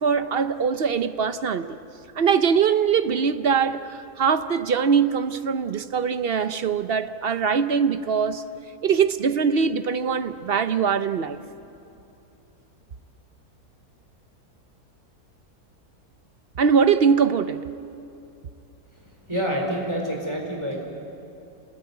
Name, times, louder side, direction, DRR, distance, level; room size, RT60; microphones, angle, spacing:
voice 1, 0.0-1.8 2.1-8.4 8.8-11.4 16.6-17.6, right 6 dB, 55° right, 0.7 m, -22 dB
voice 2, 19.3-20.8, equal, 15° right, 4.2 m, -27 dB
28.0 x 20.0 x 9.4 m
omnidirectional pair, 1.7 m